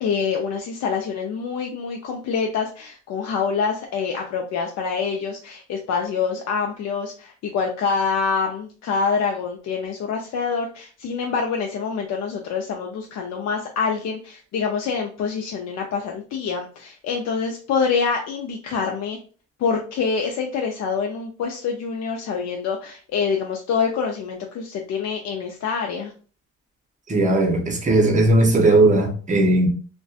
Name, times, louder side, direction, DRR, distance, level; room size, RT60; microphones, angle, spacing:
voice 1, 0.0-19.2 19.6-26.1, left 5 dB, 60° left, 0.5 m, -26 dB
voice 2, 27.1-29.7, right 2 dB, 25° right, 0.7 m, -17 dB
2.6 x 2.2 x 2.3 m
cardioid pair, 90°, 30 cm